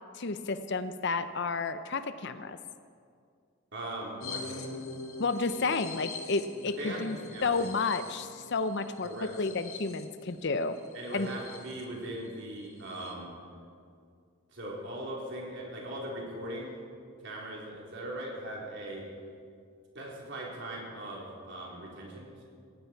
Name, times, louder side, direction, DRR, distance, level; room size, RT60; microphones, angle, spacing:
voice 1, 0.2-2.6 5.2-10.8 11.1-11.3, left 4 dB, 50° left, 11 dB, 0.6 m, -31 dB
voice 2, 3.7-4.7 6.8-7.7 9.0-9.3 10.9-13.3 14.5-16.7 17.2-19.0 19.9-22.4, right 1 dB, 55° right, -3 dB, 4.1 m, -39 dB
sound 1, 4.2-11.8 12.3-12.4 12.6-13.1, left 3 dB, 75° left, 1.5 m, -44 dB
18.5 x 16.0 x 4.6 m, 2.3 s
head